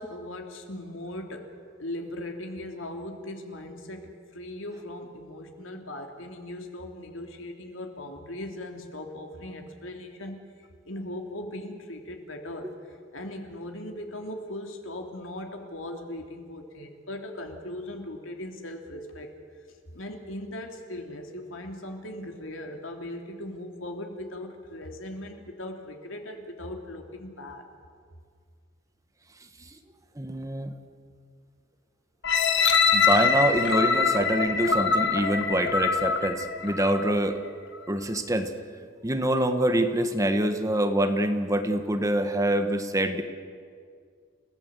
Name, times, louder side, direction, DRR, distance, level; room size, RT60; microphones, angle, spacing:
voice 1, 0.0-10.4 10.8-19.3 19.9-27.7, left 1 dB, 85° left, 3 dB, 3.1 m, -39 dB
voice 2, 30.2-30.7 32.9-37.4 37.9-38.5 39.0-43.2, right 1 dB, 15° right, 7 dB, 1.5 m, -25 dB
sound 1, 32.2-37.2 37.8-37.9, left 5 dB, 60° left, 1.9 m, -24 dB
29.5 x 17.0 x 8.3 m, 2.1 s
head